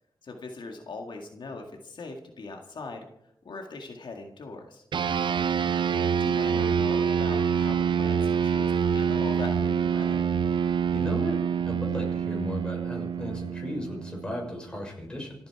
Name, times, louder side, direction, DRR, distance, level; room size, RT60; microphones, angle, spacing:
voice 1, 0.2-3.1 3.4-4.8 6.1-10.2, left 3 dB, 75° left, 3 dB, 1.9 m, -40 dB
sound 1, 4.9-14.6, right 7 dB, 80° right, 0.6 m, -26 dB
voice 2, 10.9-11.4 11.7-15.3, left 1 dB, 10° left, -1 dB, 6.1 m, -35 dB
27.0 x 9.4 x 4.8 m, 0.77 s
wide cardioid pair, 110°, 8 cm